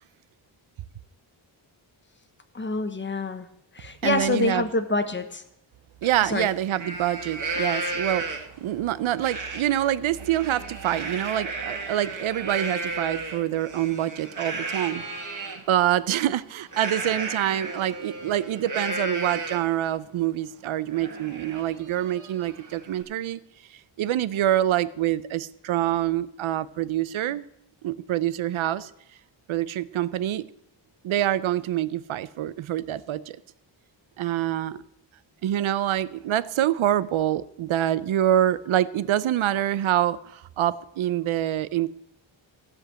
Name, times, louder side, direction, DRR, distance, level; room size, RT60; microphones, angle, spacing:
voice 1, 2.5-3.5 3.7-5.4 6.2-6.5, left 3 dB, 25° left, 1.1 m, -26 dB
voice 2, 4.0-4.6 6.0-15.0 15.7-23.4 24.0-27.4 27.8-28.9 29.5-30.5 31.0-33.4 34.2-34.8 35.4-41.9, right 12 dB, 85° right, 0.7 m, -26 dB
Livestock farm animals working animals, 6.0-6.1 6.5-8.6 9.2-9.6 10.0-15.6 16.7-19.8 20.2-20.3 20.7-23.0, right 3 dB, 40° right, 2.2 m, -33 dB
15.5 x 5.2 x 7.5 m
wide cardioid pair, 140°, 47 cm